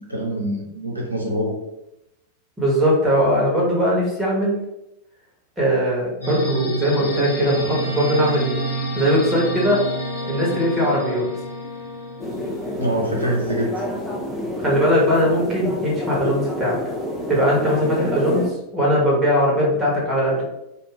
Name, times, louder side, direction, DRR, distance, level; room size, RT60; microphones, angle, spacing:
voice 1, 0.0-1.5 12.8-13.7, right 1 dB, 85° right, -2 dB, 0.5 m, -24 dB
voice 2, 2.6-4.6 5.6-8.5 8.9-9.8 10.3-11.3 14.6-16.8 17.3-20.4, equal, 15° right, -4 dB, 1.1 m, -20 dB
sound 1, 6.2-12.8, right 3 dB, 85° left, 0.6 m, -29 dB
Bowed string instrument, 7.0-12.8, left 3 dB, 55° left, 0.8 m, -35 dB
sound 2, 12.2-18.5, left 1 dB, 5° left, 0.5 m, -28 dB
2.4 x 2.2 x 3.1 m, 0.88 s
figure-of-eight pair, 90°, 0 cm